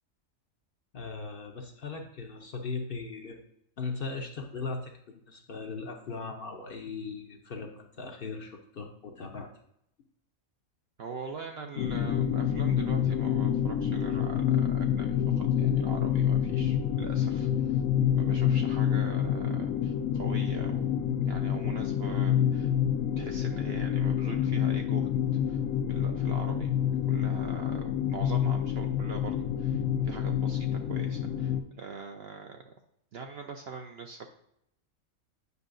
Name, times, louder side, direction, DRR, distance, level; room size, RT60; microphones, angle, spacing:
voice 1, 0.9-3.4 3.8-9.5, left 4 dB, 50° left, 3 dB, 0.8 m, -38 dB
voice 2, 11.0-17.8 18.1-20.9 21.2-22.7 23.2-25.1 25.5-25.6 25.9-26.7 27.1-32.7 33.1-34.3, right 4 dB, 60° right, 4 dB, 0.7 m, -42 dB
sound 1, 11.8-31.6, left 9 dB, 75° left, 1.0 m, -28 dB
8.1 x 5.5 x 2.6 m, 0.75 s
omnidirectional pair, 1.4 m